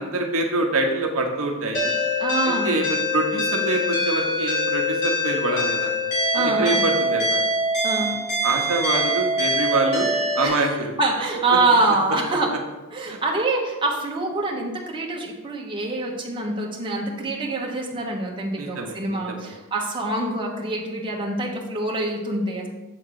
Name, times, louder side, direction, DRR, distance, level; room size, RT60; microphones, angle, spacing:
voice 1, 0.0-1.9 2.4-5.9 6.3-7.4 8.0-8.1 8.4-10.1 10.3-10.9 13.1-13.2 18.6-19.0 19.3-19.5, right 2 dB, 65° right, 1 dB, 1.0 m, -25 dB
sound 1, 1.7-10.5, left 1 dB, 50° left, 2.8 m, -24 dB
voice 2, 2.2-2.8 6.3-6.8 7.8-8.1 10.4-12.5 12.9-22.7, right 2 dB, 20° right, -2 dB, 1.2 m, -25 dB
7.9 x 3.8 x 6.4 m, 1.1 s
head